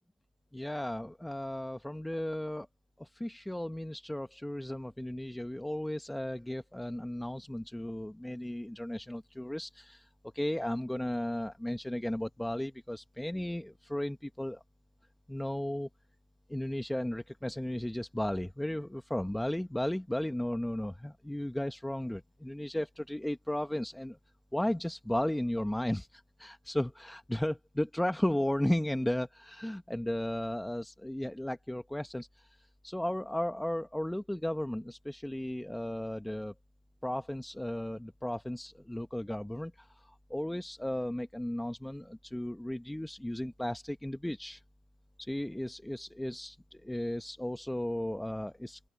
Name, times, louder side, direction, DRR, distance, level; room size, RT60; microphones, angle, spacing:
voice 1, 0.5-2.7 3.0-10.1 10.3-14.6 15.3-15.9 16.5-24.2 24.5-36.5 37.0-44.6 45.2-48.8, left 1 dB, 5° left, 0.9 m, -35 dB
open air
cardioid pair, 90°, 0 cm